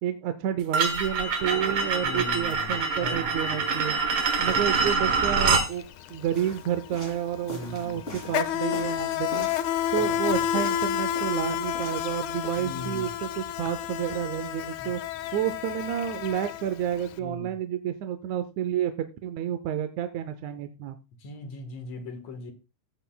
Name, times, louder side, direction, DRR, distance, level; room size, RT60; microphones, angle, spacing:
voice 1, 0.0-4.0 4.4-5.8 6.1-9.5 9.9-15.0 15.3-21.0, right 10 dB, 75° right, 8 dB, 1.9 m, -30 dB
sound 1, 0.7-5.7, right 4 dB, 55° right, 2.0 m, -25 dB
voice 2, 2.0-3.3 4.4-4.6 7.5-8.4 10.0-10.2 12.6-13.1 14.8-14.9 17.2-17.5 21.2-22.5, left 2 dB, 60° left, 6 dB, 2.5 m, -39 dB
Insect, 5.6-5.8 6.1-17.1, left 10 dB, 75° left, 2.0 m, -30 dB
sound 2, 6.3-9.6 9.9-10.9 11.1-12.6, left 1 dB, 20° left, 2.7 m, -42 dB
16.5 x 8.0 x 2.3 m, 0.28 s
omnidirectional pair, 3.6 m